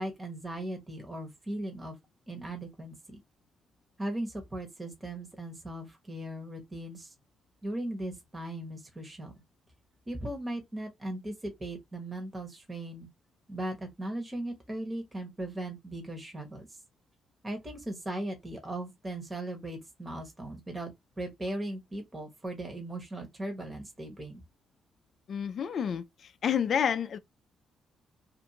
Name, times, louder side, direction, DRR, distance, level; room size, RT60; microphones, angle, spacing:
voice 1, 0.0-2.0 2.3-3.2 4.0-7.1 7.6-9.3 10.1-13.1 13.5-16.8 17.4-24.4, right 1 dB, 20° right, 1.0 m, -38 dB
voice 2, 25.3-27.2, left 8 dB, 55° left, 0.3 m, -29 dB
2.5 x 2.5 x 2.7 m
cardioid pair, 90°, 0 cm